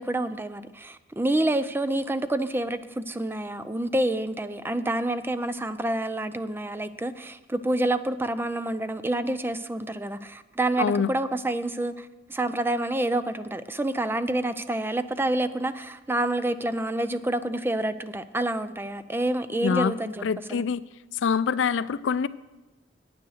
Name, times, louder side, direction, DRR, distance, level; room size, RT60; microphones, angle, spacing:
voice 1, 0.0-20.2 20.5-20.6, right 1 dB, 10° right, 12 dB, 0.4 m, -28 dB
voice 2, 10.8-11.1 19.6-20.0 20.2-20.8 21.2-22.3, left 6 dB, 85° left, 17 dB, 0.4 m, -25 dB
9.5 x 9.1 x 6.4 m, 1.1 s
head